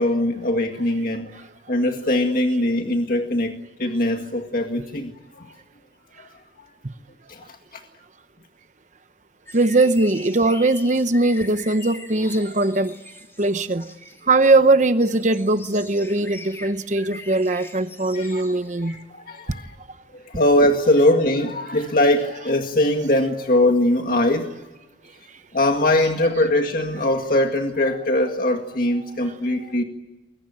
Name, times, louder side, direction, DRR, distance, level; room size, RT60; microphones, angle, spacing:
voice 1, 0.0-1.4 1.7-5.5 6.2-6.3 6.6-6.7 7.3-7.8 18.1-18.4 18.8-19.7 20.1-24.5 25.5-29.8, left 1 dB, 50° left, 2.0 m, -21 dB
sound 1, 9.5-18.9 19.5-19.6, left 2 dB, 15° left, 2.6 m, -42 dB
voice 2, 9.5-12.9 13.4-13.8 14.3-18.9, right 2 dB, 40° right, 0.9 m, -20 dB
28.0 x 22.5 x 8.9 m
head